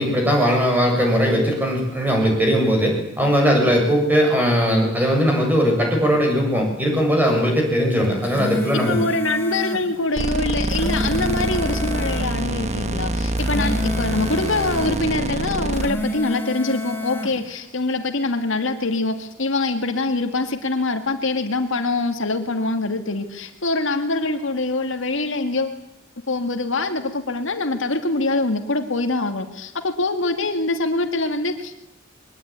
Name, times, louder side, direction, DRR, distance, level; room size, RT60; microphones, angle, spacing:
voice 1, 0.0-9.0, equal, 10° right, 1 dB, 7.5 m, -19 dB
sound 1, 8.0-9.9 10.5-12.3 13.2-15.0 15.6-17.4, left 2 dB, 10° left, 2.6 m, -29 dB
voice 2, 8.7-25.8 26.3-31.7, left 2 dB, 70° left, 6 dB, 2.0 m, -24 dB
sound 2, 10.2-15.9, right 1 dB, 35° right, 1.3 m, -25 dB
22.5 x 20.0 x 9.5 m, 0.86 s
head